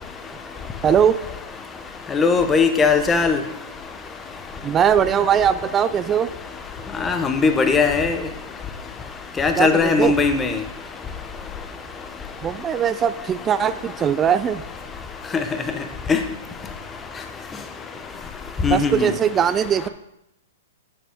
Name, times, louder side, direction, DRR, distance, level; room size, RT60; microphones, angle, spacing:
voice 1, 0.8-1.1 4.6-6.3 9.6-10.2 12.4-14.6 18.7-19.9, right 8 dB, 20° right, 12 dB, 0.3 m, -20 dB
voice 2, 2.1-3.4 7.0-8.2 9.4-10.5 16.1-16.2 18.6-19.0, left 5 dB, 15° left, 7 dB, 1.0 m, -18 dB
10.5 x 6.3 x 3.6 m, 0.82 s
hypercardioid pair, 120°, 0 cm